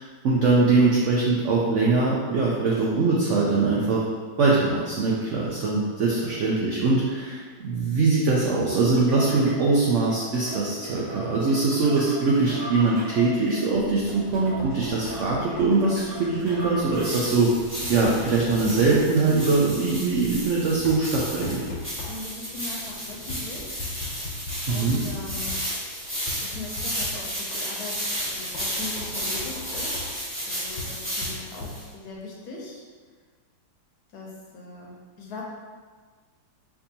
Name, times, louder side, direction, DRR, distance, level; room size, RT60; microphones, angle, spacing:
voice 1, 0.0-4.0 4.4-17.5 17.9-21.6 24.7-25.0, right 3 dB, 85° right, -4 dB, 0.6 m, -22 dB
sound 1, 9.0-17.3, equal, 50° right, 1.6 m, -39 dB
Knock, 13.8-32.2, left 2 dB, 90° left, 1.5 m, -40 dB
sound 2, 16.9-31.8, equal, 10° right, 1.0 m, -33 dB
voice 2, 22.1-23.8 24.7-25.6 26.4-30.0 30.5-32.8 34.1-35.4, left 3 dB, 65° left, -3 dB, 1.1 m, -40 dB
4.5 x 2.7 x 2.7 m, 1.5 s
omnidirectional pair, 1.9 m